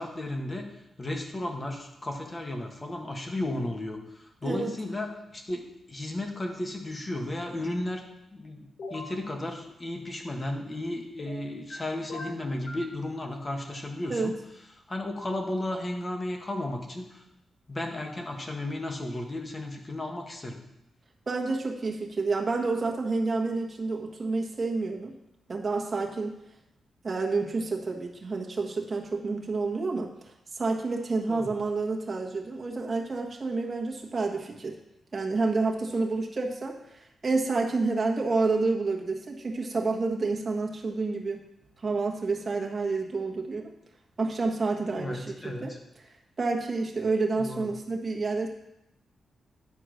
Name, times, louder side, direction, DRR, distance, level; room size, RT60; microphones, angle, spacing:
voice 1, 0.0-8.0 8.3-14.4 14.9-17.2 17.7-20.6 31.3-31.5 44.9-45.8 47.4-47.7, left 1 dB, 25° left, 3 dB, 1.4 m, -34 dB
sound 1, 8.8-9.1 11.2-11.8 12.1-12.9, left 2 dB, 65° left, 2.7 m, -40 dB
voice 2, 21.3-25.1 25.5-26.4 27.0-30.1 30.5-34.8 35.1-41.4 41.8-43.7 44.2-45.7 46.4-48.5, right 3 dB, 35° right, 0 dB, 1.5 m, -29 dB
9.8 x 4.5 x 6.4 m, 0.87 s
cardioid pair, 100°, 0 cm